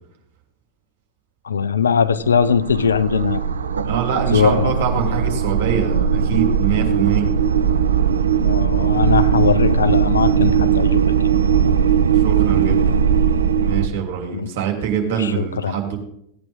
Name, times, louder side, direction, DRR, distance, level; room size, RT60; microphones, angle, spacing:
voice 1, 1.4-3.4 4.3-4.7 8.4-11.0 14.3-14.5 15.2-15.8, left 6 dB, 75° left, 13 dB, 0.6 m, -20 dB
sound 1, 2.0-13.9, right 7 dB, 75° right, 0.6 m, -18 dB
voice 2, 3.8-7.3 12.0-13.0 13.6-16.0, right 8 dB, 60° right, 2 dB, 3.1 m, -24 dB
16.5 x 9.2 x 3.6 m, 0.72 s
figure-of-eight pair, 90°, 0 cm